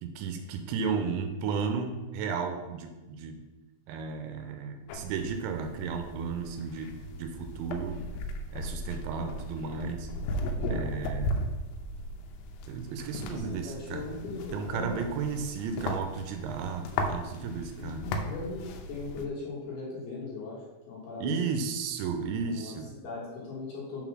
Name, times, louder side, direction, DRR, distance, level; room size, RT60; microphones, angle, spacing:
voice 1, 0.0-3.4 3.9-6.9 7.2-8.0 8.5-10.1 10.7-11.5 12.7-14.0 14.5-18.0 21.2-23.0, right 5 dB, 85° right, 5 dB, 2.8 m, -34 dB
sound 1, 4.9-19.3, left 1 dB, 85° left, 3.0 m, -37 dB
voice 2, 10.6-11.0 13.3-15.0 17.8-21.5 22.4-22.7 23.0-24.0, left 3 dB, 65° left, -5 dB, 2.9 m, -39 dB
6.8 x 4.0 x 6.0 m, 1.1 s
omnidirectional pair, 5.4 m